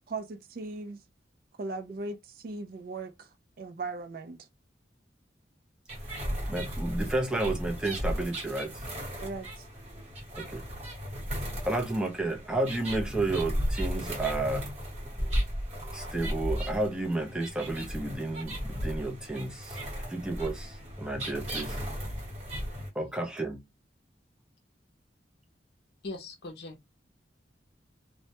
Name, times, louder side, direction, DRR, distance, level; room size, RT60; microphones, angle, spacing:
voice 1, 0.1-1.0 1.6-4.4 9.2-9.7, right 3 dB, 55° right, 0.4 m, -38 dB
sound 1, 5.9-22.9, equal, 35° right, 1.0 m, -35 dB
voice 2, 6.5-8.7 10.4-10.7 11.7-14.7 15.9-19.8 20.1-21.8 22.9-23.6, right 2 dB, 5° right, 0.5 m, -31 dB
voice 3, 26.0-26.9, left 2 dB, 60° left, 0.6 m, -40 dB
2.1 x 2.1 x 2.8 m
head